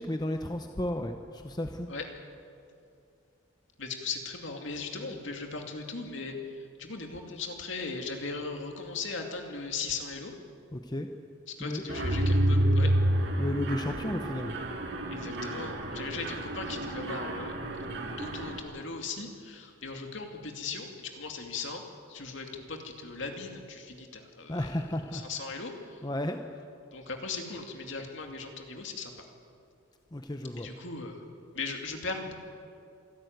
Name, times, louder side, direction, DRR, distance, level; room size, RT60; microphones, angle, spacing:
voice 1, 0.0-1.9 10.7-11.1 11.6-11.8 13.4-14.5 24.5-25.3 26.0-26.4 30.1-30.7, left 1 dB, 20° left, 5 dB, 0.8 m, -33 dB
voice 2, 3.8-6.3 6.8-10.3 11.6-12.9 15.1-17.5 18.0-21.8 22.1-24.7 25.1-26.0 26.9-29.1 30.6-31.2 31.5-32.3, left 4 dB, 60° left, 3 dB, 2.6 m, -38 dB
Mechanisms, 11.9-18.6, right 1 dB, 55° right, 2.2 m, -29 dB
26.0 x 12.5 x 9.4 m, 2.5 s
head